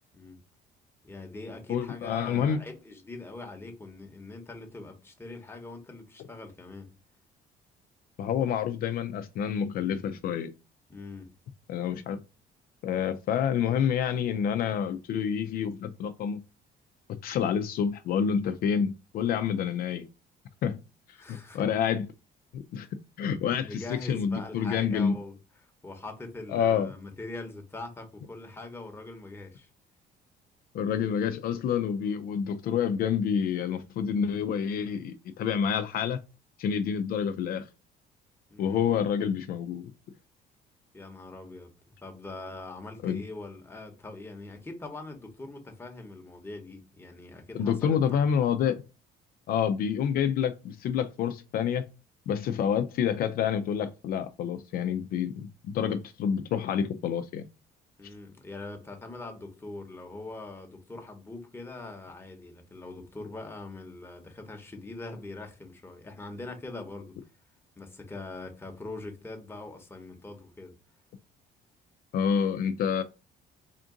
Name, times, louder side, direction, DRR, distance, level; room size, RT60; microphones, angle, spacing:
voice 1, 1.0-6.9 10.9-11.3 21.2-21.7 23.6-29.7 38.5-38.9 40.9-41.7 42.0-48.3 58.0-67.1 67.8-70.8, left 2 dB, 15° left, 0.9 m, -42 dB
voice 2, 1.7-2.6 8.2-10.5 11.7-12.2 12.8-16.4 17.2-20.1 20.6-20.8 21.1-22.1 22.5-22.9 23.2-25.2 26.5-26.9 30.7-36.2 36.6-37.7 38.6-39.9 43.0-43.2 47.5-48.8 49.5-51.9 52.3-57.4 72.1-73.0, left 8 dB, 60° left, 0.4 m, -28 dB
3.6 x 2.5 x 3.7 m
cardioid pair, 110°, 17 cm